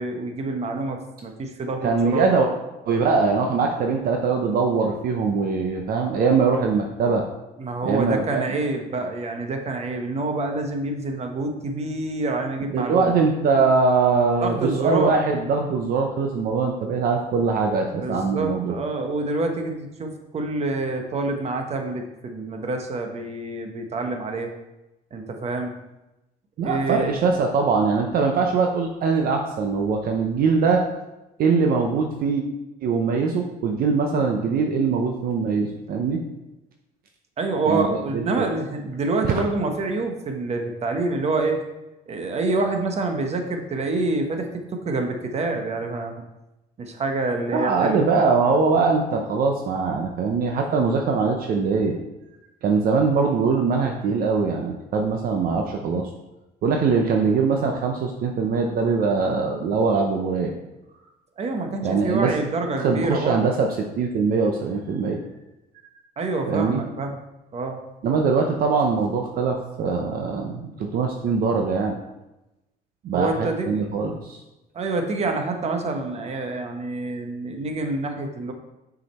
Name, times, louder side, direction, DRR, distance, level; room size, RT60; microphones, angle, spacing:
voice 1, 0.0-2.3 7.6-13.1 14.4-15.2 18.0-24.5 25.1-25.8 26.6-27.2 37.4-41.6 42.1-46.2 46.8-48.0 61.4-63.5 66.2-67.2 67.5-67.8 73.1-73.9 74.7-78.5, right 3 dB, 40° right, 4 dB, 1.1 m, -27 dB
voice 2, 1.8-2.5 2.9-7.3 7.8-8.4 12.7-18.8 26.6-30.9 31.4-32.4 32.8-36.2 37.7-37.9 38.1-38.4 39.2-39.3 47.5-52.0 52.6-56.1 56.6-60.5 61.8-62.3 62.8-65.2 65.8-65.9 66.5-66.8 68.0-72.0 73.0-74.4, right 4 dB, 60° right, 3 dB, 0.8 m, -22 dB
6.3 x 4.9 x 4.3 m, 0.97 s
cardioid pair, 110°, 17 cm